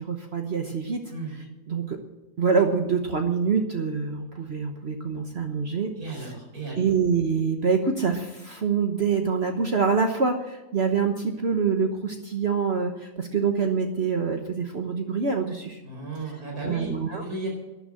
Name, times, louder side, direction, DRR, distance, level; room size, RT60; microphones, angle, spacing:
voice 1, 0.1-1.0 1.7-2.0 2.4-5.9 6.2-6.3 6.8-12.9 13.2-15.8 16.6-17.2, right 5 dB, 45° right, 4 dB, 1.3 m, -25 dB
voice 2, 6.0-6.9 15.8-17.5, right 3 dB, 75° right, -1 dB, 5.4 m, -34 dB
13.0 x 10.5 x 7.6 m, 1.1 s
omnidirectional pair, 1.6 m